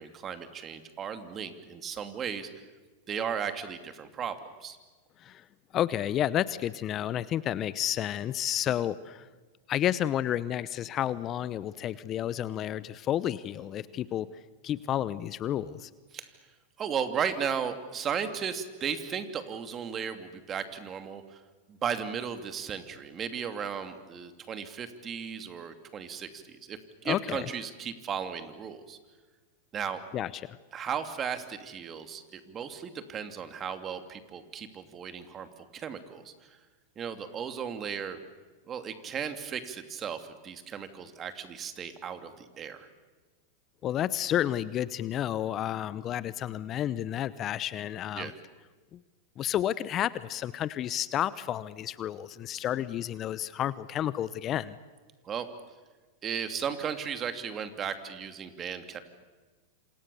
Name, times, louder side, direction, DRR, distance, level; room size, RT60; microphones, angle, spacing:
voice 1, 0.0-2.5 3.1-4.8 16.1-16.3 16.8-21.4 21.7-29.0 29.7-30.0 30.7-35.5 35.7-36.6 37.0-38.2 38.7-42.9 48.1-48.3 55.2-55.5 56.2-59.0, right 7 dB, 30° right, 9 dB, 2.7 m, -35 dB
voice 2, 5.7-9.3 9.7-14.3 14.6-15.9 27.0-27.5 30.1-30.6 43.8-48.3 48.9-49.0 49.4-54.8, left 11 dB, 35° left, 17 dB, 0.8 m, -31 dB
27.5 x 27.0 x 7.0 m, 1.3 s
hypercardioid pair, 110°, 0 cm